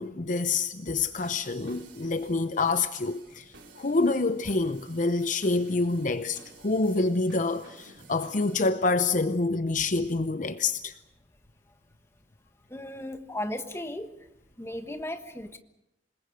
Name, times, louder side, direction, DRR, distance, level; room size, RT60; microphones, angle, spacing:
voice 1, 0.0-3.4 3.8-10.9, left 3 dB, 45° left, 0.7 m, -27 dB
sound 1, 1.2-8.7, right 3 dB, 90° right, 4.0 m, -53 dB
voice 2, 12.7-14.1 14.6-15.6, left 1 dB, 15° left, 1.4 m, -35 dB
27.0 x 20.5 x 6.5 m
head